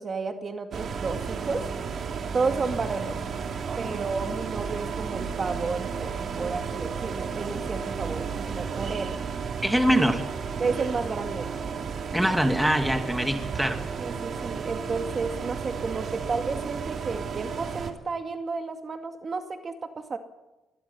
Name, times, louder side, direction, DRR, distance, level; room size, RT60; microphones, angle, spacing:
voice 1, 0.0-1.6 2.3-3.2 3.8-9.2 10.6-11.5 14.0-20.2, right 4 dB, 40° right, 6 dB, 2.2 m, -32 dB
sound 1, 0.7-17.9, right 6 dB, 55° right, 2.7 m, -33 dB
voice 2, 9.6-10.2 12.1-13.8, equal, 5° right, 5 dB, 2.5 m, -23 dB
24.0 x 21.0 x 5.6 m, 1.0 s
cardioid pair, 90°, 0 cm